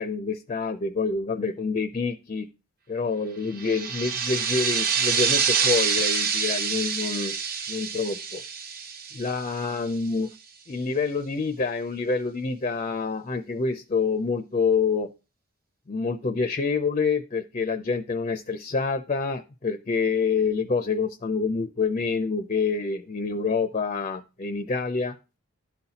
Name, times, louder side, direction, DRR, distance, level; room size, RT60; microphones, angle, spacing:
voice 1, 0.0-2.5 2.9-7.4 7.7-8.4 9.1-10.3 10.7-15.1 15.9-25.2, left 4 dB, 30° left, 9 dB, 0.4 m, -27 dB
sound 1, 3.6-9.9, right 6 dB, 40° right, 0.9 m, -26 dB
12.0 x 4.0 x 2.8 m, 0.30 s
head